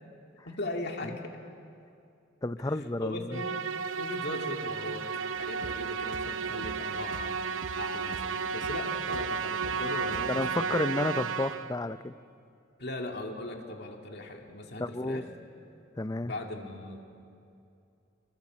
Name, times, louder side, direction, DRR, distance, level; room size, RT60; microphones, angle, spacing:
voice 1, 0.4-1.2 2.6-2.7 3.0-3.5 4.0-5.0 5.4-7.4 7.8-10.3 10.6-10.7 12.8-15.2 16.2-17.0, left 2 dB, 55° left, 2 dB, 2.4 m, -38 dB
voice 2, 2.4-3.4 10.3-12.1 14.8-15.2 16.0-16.3, left 2 dB, 20° left, 13 dB, 0.5 m, -31 dB
Musical instrument, 3.3-11.8, right 6 dB, 90° right, 0.8 m, -33 dB
sound 1, 5.3-10.5, right 3 dB, 65° right, 0.5 m, -47 dB
25.0 x 22.0 x 7.4 m, 2.5 s
head